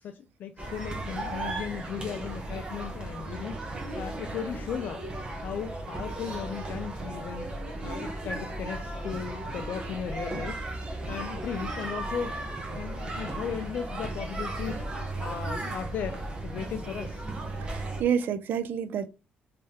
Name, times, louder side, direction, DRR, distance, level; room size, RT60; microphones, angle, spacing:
voice 1, 0.0-5.0 5.4-7.5 7.8-10.7 11.1-12.4 12.7-14.8 15.2-17.2, left 8 dB, 60° left, 0.4 m, -36 dB
sound 1, 0.6-18.0, right 2 dB, 25° right, 1.0 m, -35 dB
voice 2, 17.7-19.1, right 8 dB, 65° right, 0.4 m, -28 dB
3.4 x 3.3 x 2.8 m
cardioid pair, 120°, 4 cm